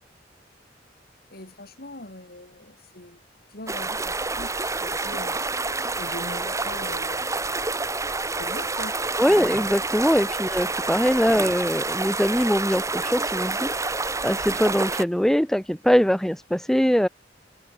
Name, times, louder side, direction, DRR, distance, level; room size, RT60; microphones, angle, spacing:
voice 1, 1.3-3.2 3.5-5.4 5.8-7.2 8.4-8.9 9.3-9.5 11.2-11.4, left 1 dB, 60° left, 5.1 m, -41 dB
sound 1, 3.7-15.0, right 3 dB, 15° right, 1.9 m, -28 dB
voice 2, 9.2-13.7 14.2-17.1, equal, 5° left, 0.5 m, -22 dB
head